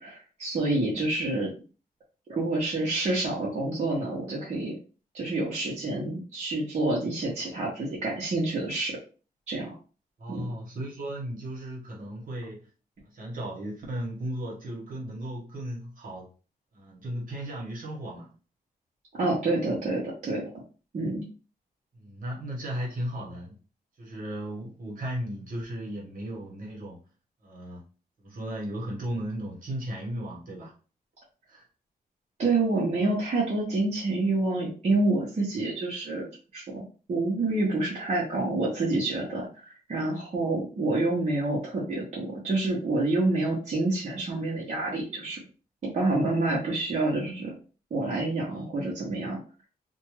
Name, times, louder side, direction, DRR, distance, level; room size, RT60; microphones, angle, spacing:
voice 1, 0.0-1.5 2.3-4.8 5.1-8.9 9.5-9.7 10.3-10.5 19.1-20.6 20.9-21.3 32.4-36.3 36.5-45.4 45.8-47.5 47.9-49.4, right 2 dB, 45° right, -5 dB, 0.9 m, -28 dB
voice 2, 10.2-12.7 13.0-16.3 16.7-18.3 19.4-19.5 21.9-23.6 24.0-27.0 27.4-27.8 28.2-30.7 31.5-31.6 48.5-48.6, right 1 dB, 60° right, -2 dB, 1.2 m, -36 dB
2.6 x 2.2 x 3.0 m, 0.37 s
wide cardioid pair, 125°, 16 cm